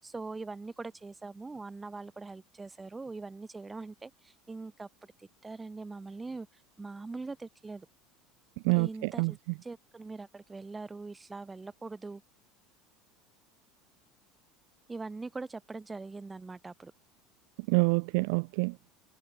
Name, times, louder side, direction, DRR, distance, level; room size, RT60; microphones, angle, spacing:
voice 1, 0.0-4.9 5.2-6.5 6.8-7.9 8.7-12.2 14.9-16.9, right 3 dB, 15° right, 5.9 m, -42 dB
voice 2, 8.6-9.3 17.7-18.9, right 33 dB, 70° right, 0.3 m, -27 dB
hypercardioid pair, 90°, 0 cm